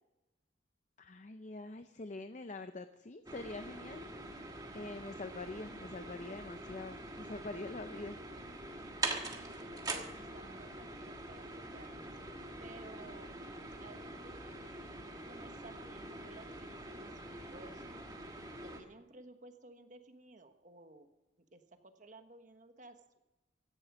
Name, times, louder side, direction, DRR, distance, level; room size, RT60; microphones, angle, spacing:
voice 1, 1.0-4.4 4.7-8.2, left 2 dB, 40° left, 9 dB, 0.5 m, -45 dB
sound 1, 3.3-18.8, right 2 dB, 20° right, 1.5 m, -44 dB
voice 2, 9.0-10.1 10.3-12.1 12.6-13.4 13.8-18.0 18.6-21.1 21.4-23.2, right 2 dB, 40° right, 7 dB, 1.3 m, -56 dB
16.5 x 11.0 x 6.1 m, 1.1 s
head